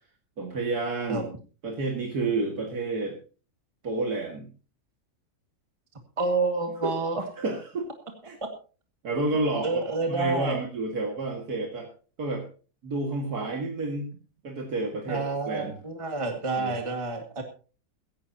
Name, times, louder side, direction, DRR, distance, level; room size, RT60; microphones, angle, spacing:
voice 1, 0.4-1.3 1.6-3.2 3.8-4.5 6.8-6.9 7.4-7.9 8.2-8.4 9.0-11.9 12.2-12.5 12.8-14.1 14.4-15.7 16.6-16.7, right 3 dB, 75° right, 1 dB, 2.6 m, -30 dB
voice 2, 6.2-7.2 9.6-10.6 15.1-17.4, right 3 dB, 20° right, 4 dB, 1.9 m, -29 dB
16.5 x 15.5 x 2.9 m, 0.36 s
omnidirectional pair, 1.6 m